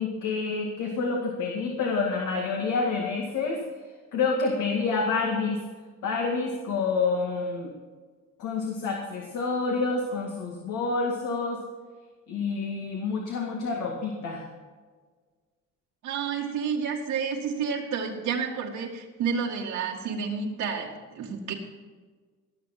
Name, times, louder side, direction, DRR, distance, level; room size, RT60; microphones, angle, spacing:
voice 1, 0.0-3.6 4.1-5.6 6.0-7.7 8.4-11.6 12.3-14.4, left 4 dB, 80° left, 0 dB, 2.1 m, -28 dB
voice 2, 16.0-21.5, right 6 dB, 90° right, -2 dB, 2.1 m, -30 dB
18.0 x 6.9 x 5.9 m, 1.5 s
cardioid pair, 90°, 30 cm